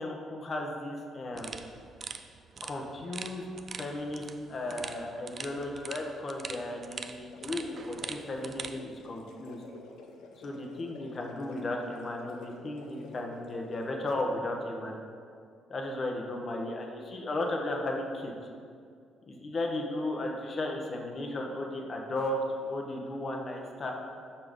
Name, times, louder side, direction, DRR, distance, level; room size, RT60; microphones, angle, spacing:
voice 1, 0.0-1.6 2.6-3.5 3.8-4.2 4.5-9.6 10.4-15.0 15.7-18.3 19.3-22.4 22.7-23.9, left 1 dB, 45° left, 1 dB, 1.0 m, -35 dB
sound 1, 1.3-8.8, right 5 dB, 45° right, 0.4 m, -43 dB
sound 2, 7.1-13.9, left 3 dB, 75° left, 0.6 m, -50 dB
5.8 x 4.3 x 5.1 m, 2.2 s
hypercardioid pair, 55°, 0 cm